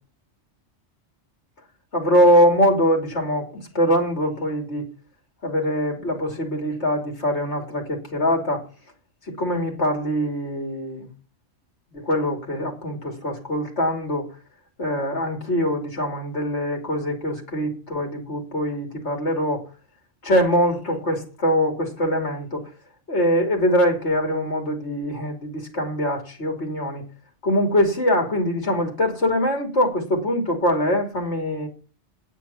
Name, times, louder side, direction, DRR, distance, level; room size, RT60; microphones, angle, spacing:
voice 1, 1.9-4.9 5.4-8.6 9.3-11.1 11.9-14.3 14.8-19.6 20.2-22.7 23.1-27.0 27.4-31.7, equal, 70° left, 3.2 m, -23 dB
9.5 x 8.3 x 7.2 m
omnidirectional pair, 1.2 m